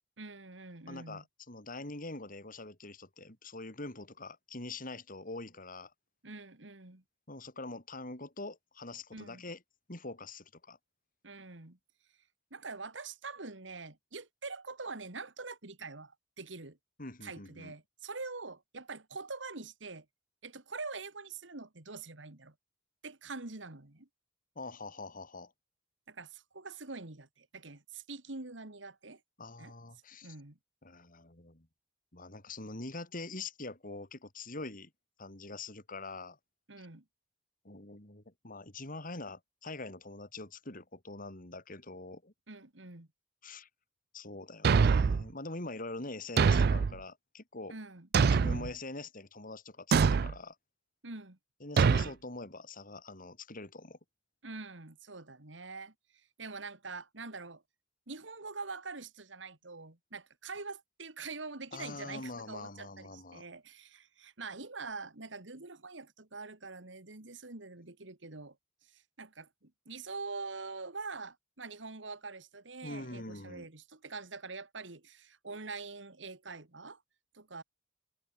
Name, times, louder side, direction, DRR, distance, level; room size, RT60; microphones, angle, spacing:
voice 1, 0.2-1.2 6.2-7.0 9.1-9.4 11.2-11.8 12.5-16.8 17.2-20.1 20.4-22.5 23.0-24.1 26.1-29.2 29.6-29.7 30.2-30.6 36.7-37.0 42.5-43.1 47.7-48.1 51.0-51.4 54.4-57.6 58.1-68.6 68.8-77.0 77.3-77.6, right 3 dB, 85° right, 2.3 m, -44 dB
voice 2, 0.9-5.9 7.3-9.6 9.9-10.8 17.0-17.7 24.6-25.5 29.4-30.4 30.8-31.7 32.1-34.9 35.2-36.4 36.8-36.9 37.6-42.3 43.4-43.7 44.1-47.8 48.2-50.6 51.6-54.0 61.7-63.5 72.8-73.7, left 2 dB, 50° left, 4.3 m, -44 dB
Thump thud, 44.6-45.3 46.4-47.0 48.1-48.7 49.9-50.3 51.8-52.1, right 5 dB, 55° right, 0.4 m, -24 dB
head